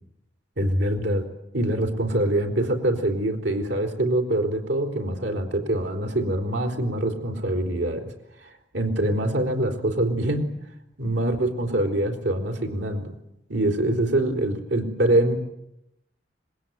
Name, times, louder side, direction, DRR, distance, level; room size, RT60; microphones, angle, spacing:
voice 1, 0.6-1.3 1.5-8.1 8.4-10.5 11.0-13.1 13.5-15.4, right 1 dB, 80° right, 6 dB, 4.1 m, -24 dB
26.5 x 21.0 x 9.4 m, 0.83 s
head